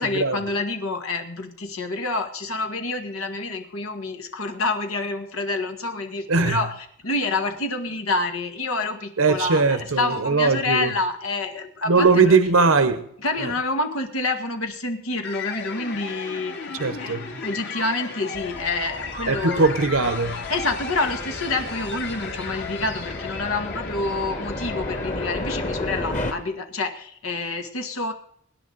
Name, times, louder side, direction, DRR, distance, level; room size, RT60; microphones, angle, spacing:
voice 1, 0.0-12.4 13.2-19.7 20.5-28.1, left 3 dB, 90° left, 5 dB, 1.9 m, -28 dB
voice 2, 9.2-10.9 11.9-13.0 13.4-13.5 16.8-17.2 19.3-20.4, right 4 dB, 75° right, 10 dB, 0.9 m, -20 dB
sound 1, 15.2-26.4, left 4 dB, 55° left, 2.3 m, -35 dB
sound 2, 18.3-26.3, left 1 dB, 35° left, 1.8 m, -33 dB
24.5 x 10.5 x 4.0 m, 0.67 s
head